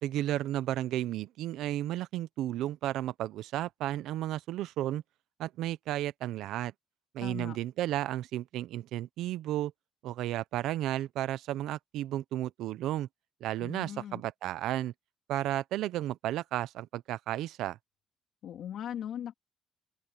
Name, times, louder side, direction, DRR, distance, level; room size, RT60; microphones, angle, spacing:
voice 1, 0.0-5.0 5.4-6.7 7.1-9.7 10.0-13.1 13.4-14.9 15.3-17.8, right 13 dB, 90° right, 0.7 m, -33 dB
voice 2, 7.2-7.6 13.6-14.2 18.4-19.3, left 10 dB, 75° left, 3.2 m, -39 dB
open air
cardioid pair, 90°, 0 cm